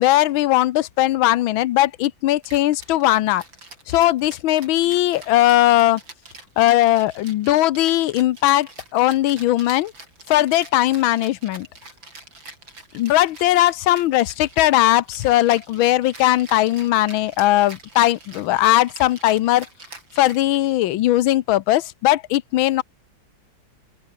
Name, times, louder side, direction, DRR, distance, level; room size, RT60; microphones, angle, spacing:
voice 1, 0.0-3.4 3.9-6.0 6.6-9.9 10.3-11.7 12.9-19.7 20.1-22.8, left 15 dB, 85° left, 1.6 m, -19 dB
Rattle (instrument), 2.4-20.9, right 2 dB, 75° right, 7.8 m, -44 dB
open air
omnidirectional pair, 2.1 m